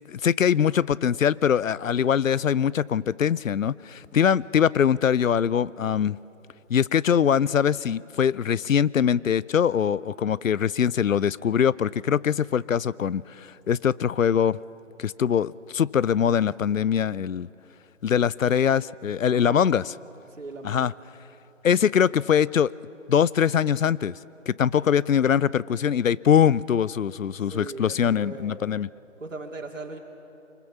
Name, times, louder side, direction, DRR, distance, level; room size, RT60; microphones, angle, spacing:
voice 1, 0.1-6.2 6.7-14.6 15.0-17.5 18.0-19.8 20.6-20.9 21.6-22.7 23.1-24.1 24.5-28.9, left 8 dB, 85° left, 22 dB, 0.6 m, -22 dB
voice 2, 19.3-19.7 20.3-20.9 24.7-24.9 27.4-28.7 29.2-30.0, right 3 dB, 75° right, 0 dB, 2.6 m, -39 dB
25.0 x 20.0 x 7.2 m, 2.9 s
figure-of-eight pair, 155°, 38 cm